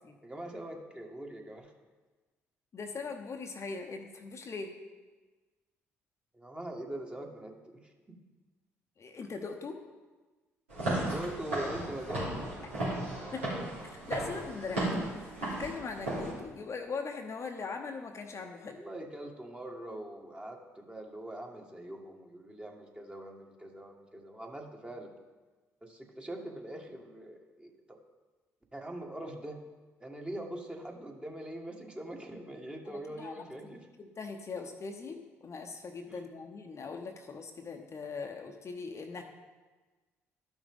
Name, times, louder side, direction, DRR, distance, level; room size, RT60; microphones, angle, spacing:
voice 1, 0.2-1.7 6.3-7.8 8.1-8.2 11.0-12.4 18.7-25.1 25.8-28.0 28.7-29.6 30.0-33.9 36.1-36.2, right 1 dB, 15° right, 1 dB, 1.5 m, -43 dB
voice 2, 2.7-4.7 9.0-9.8 13.3-13.5 13.8-18.8 32.9-33.4 34.0-39.2, left 4 dB, 40° left, 4 dB, 0.9 m, -40 dB
Walk footsteps / Siren, 10.7-16.3, right 1 dB, 90° right, 3.0 m, -35 dB
12.0 x 6.1 x 3.6 m, 1.3 s
hypercardioid pair, 50°, 7 cm